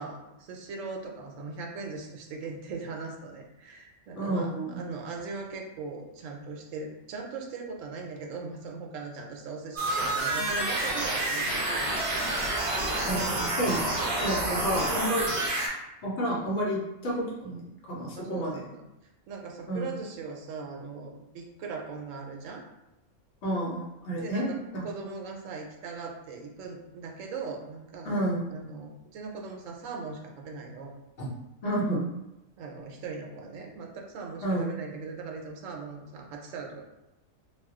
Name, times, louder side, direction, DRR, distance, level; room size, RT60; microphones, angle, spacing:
voice 1, 0.0-11.9 14.4-15.3 18.1-18.9 19.3-22.7 24.1-24.6 24.8-28.2 28.5-30.9 32.6-36.8, right 4 dB, 80° right, 2 dB, 0.9 m, -39 dB
voice 2, 4.1-4.8 13.1-15.2 16.0-18.6 19.7-19.9 23.4-24.8 28.0-28.4 31.2-31.3 31.6-32.1 34.4-34.7, right 1 dB, 65° left, -4 dB, 1.0 m, -30 dB
sound 1, 9.8-15.7, right 2 dB, 40° right, 0.4 m, -28 dB
2.4 x 2.2 x 3.5 m, 0.93 s
omnidirectional pair, 1.3 m